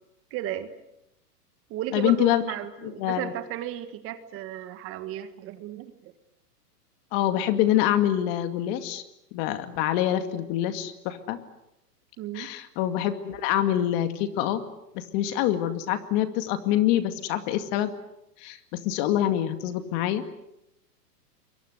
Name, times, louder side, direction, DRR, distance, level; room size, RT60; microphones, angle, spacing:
voice 1, 0.3-0.7 1.7-6.1 12.2-12.5, right 12 dB, 25° right, 10 dB, 1.6 m, -34 dB
voice 2, 1.9-2.4 2.8-3.3 7.1-9.0 9.3-11.4 12.3-14.6 14.9-17.9 18.4-20.3, left 12 dB, 35° left, 9 dB, 2.2 m, -25 dB
27.5 x 23.0 x 8.1 m, 0.85 s
hypercardioid pair, 140°, 47 cm